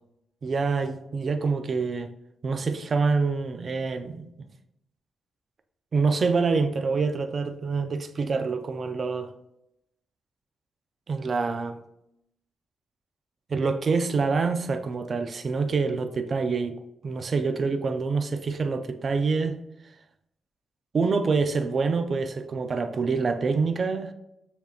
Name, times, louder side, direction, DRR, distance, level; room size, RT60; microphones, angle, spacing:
voice 1, 0.4-2.1 2.4-4.5 5.9-9.3 11.1-11.8 13.5-19.6 20.9-24.1, right 4 dB, 40° right, 0.4 m, -26 dB
6.8 x 2.9 x 2.3 m
cardioid pair, 125°, 0 cm